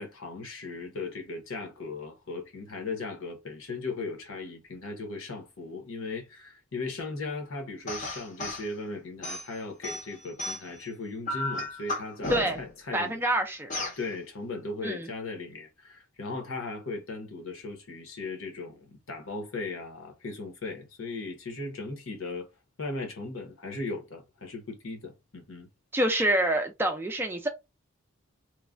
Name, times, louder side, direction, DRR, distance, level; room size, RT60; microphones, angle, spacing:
voice 1, 0.0-13.2 14.0-22.5 22.8-25.7, left 3 dB, 70° left, 0.9 m, -37 dB
sound 1, 7.9-8.7 9.2-10.8 11.3-12.7 13.7-14.0, left 2 dB, 35° left, 0.6 m, -34 dB
voice 2, 12.3-12.6 12.9-13.7 14.8-15.1 25.9-27.5, right 1 dB, 10° right, 0.3 m, -26 dB
3.0 x 2.1 x 2.5 m
head